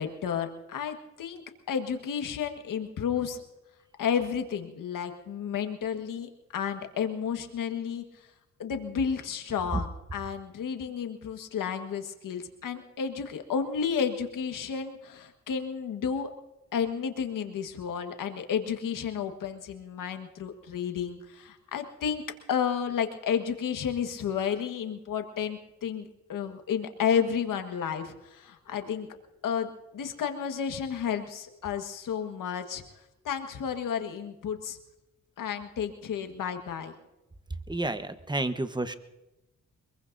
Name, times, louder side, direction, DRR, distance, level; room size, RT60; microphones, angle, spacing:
voice 1, 0.0-1.4 1.7-3.4 4.0-8.0 8.6-16.3 16.7-22.2 22.5-29.1 29.4-32.8 33.3-34.8 35.4-36.9, left 7 dB, 80° left, 6 dB, 1.7 m, -31 dB
voice 2, 37.7-39.0, right 2 dB, 15° right, 10 dB, 1.2 m, -30 dB
23.5 x 22.0 x 2.7 m, 0.98 s
cardioid pair, 70°, 32 cm